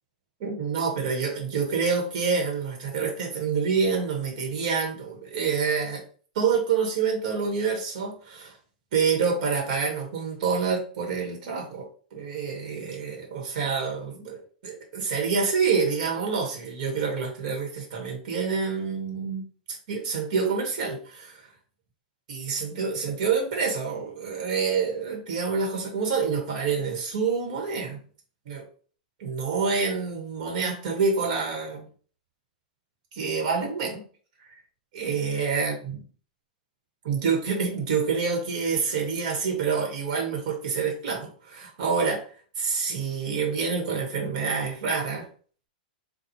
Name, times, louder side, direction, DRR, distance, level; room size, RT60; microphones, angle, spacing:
voice 1, 0.4-6.0 6.3-8.5 8.9-19.4 19.7-21.4 22.3-28.0 28.4-28.6 29.2-31.8 33.1-34.0 34.9-36.0 37.0-42.2 42.6-45.3, right 5 dB, 60° right, 1 dB, 1.3 m, -27 dB
4.2 x 2.3 x 2.8 m, 0.43 s
hypercardioid pair, 125°, 5 cm